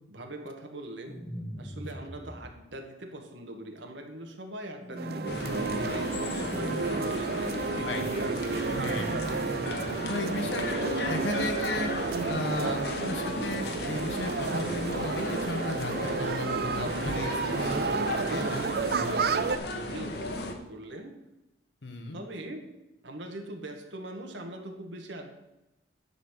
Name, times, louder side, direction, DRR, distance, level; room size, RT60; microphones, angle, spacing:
voice 1, 0.1-1.3 1.6-8.1 11.0-11.5 12.0-13.3 17.3-21.2 22.1-22.7 23.0-25.3, right 1 dB, 90° right, 4 dB, 1.5 m, -41 dB
sound 1, 1.1-2.5 4.8-5.9 6.2-7.0 8.7-9.9, equal, 5° left, 1.1 m, -40 dB
sound 2, 5.0-19.6, right 4 dB, 60° right, 0.4 m, -32 dB
sound 3, 5.2-20.5, left 1 dB, 65° left, 1.2 m, -35 dB
voice 2, 7.8-8.2 8.6-9.2 10.1-18.0 18.3-19.3 21.8-22.2, left 2 dB, 85° left, 4 dB, 1.3 m, -36 dB
11.0 x 4.2 x 7.3 m, 0.95 s
head